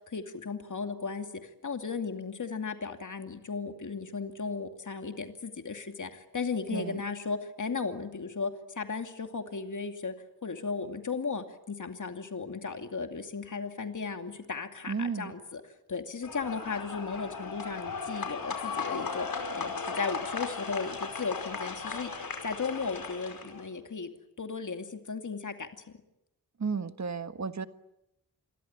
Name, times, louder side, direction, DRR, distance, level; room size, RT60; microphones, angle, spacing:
voice 1, 0.1-10.1 10.4-22.1 22.4-24.1 24.4-25.7, left 5 dB, 60° left, 6 dB, 2.5 m, -36 dB
voice 2, 14.9-15.3 26.6-27.7, right 5 dB, 50° right, 10 dB, 1.5 m, -33 dB
sound 1, 16.2-23.6, left 5 dB, 85° left, 5.1 m, -36 dB
27.5 x 23.0 x 8.8 m, 0.85 s
wide cardioid pair, 100°, 34 cm